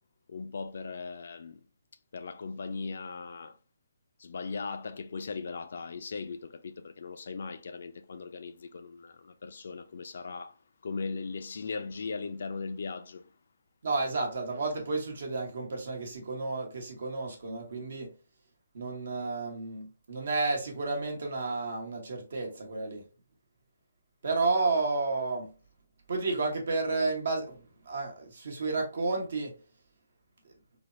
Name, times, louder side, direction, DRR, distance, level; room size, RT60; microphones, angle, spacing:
voice 1, 0.3-1.6 2.1-3.6 4.2-10.5 10.8-13.3, left 4 dB, 65° left, 0.3 m, -38 dB
voice 2, 13.8-18.1 18.7-23.0 24.2-25.5 26.1-29.5, right 3 dB, 65° right, 1.0 m, -31 dB
3.3 x 2.0 x 2.5 m
hypercardioid pair, 160°, 0 cm